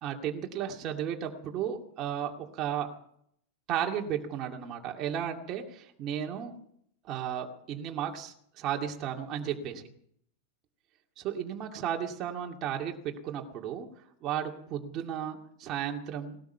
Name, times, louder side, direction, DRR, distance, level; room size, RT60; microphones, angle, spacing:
voice 1, 0.0-2.9 3.7-6.5 7.0-9.8 11.2-13.9 14.2-16.4, right 9 dB, 35° right, 2 dB, 2.4 m, -34 dB
19.0 x 13.0 x 5.7 m, 0.66 s
supercardioid pair, 150°, 0 cm